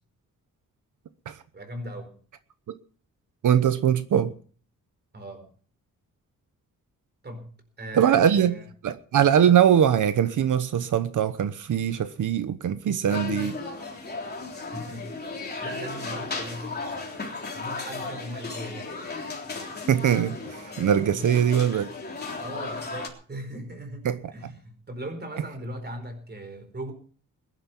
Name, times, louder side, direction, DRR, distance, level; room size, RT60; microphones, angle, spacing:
voice 1, 1.5-2.1 5.1-5.5 7.2-7.5 7.8-8.7 14.5-17.2 17.5-19.0 21.1-21.3 22.4-26.9, right 1 dB, 30° right, 4.4 m, -39 dB
voice 2, 3.4-4.3 7.9-8.6 8.8-13.6 19.9-21.9 24.0-24.2, right 9 dB, 65° right, 1.0 m, -22 dB
sound 1, 13.1-23.1, left 3 dB, 30° left, 3.6 m, -35 dB
21.0 x 11.0 x 4.5 m
wide cardioid pair, 140°, 33 cm